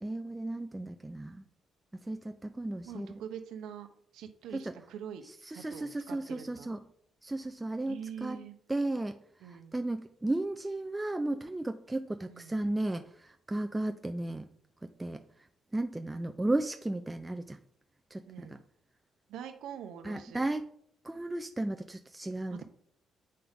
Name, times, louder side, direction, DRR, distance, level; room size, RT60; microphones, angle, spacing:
voice 1, 0.0-1.4 2.0-3.2 4.5-4.7 5.2-6.8 7.2-14.5 14.8-15.2 15.7-17.6 18.1-18.5 20.0-20.7 21.0-22.6, right 2 dB, 15° right, 6 dB, 0.4 m, -35 dB
voice 2, 2.8-3.9 4.1-6.7 7.9-8.5 9.4-9.8 12.3-12.6 18.2-18.6 19.3-20.4 22.5-22.6, right 8 dB, 85° right, 7 dB, 0.8 m, -44 dB
7.6 x 5.6 x 3.5 m, 0.67 s
cardioid pair, 90°, 0 cm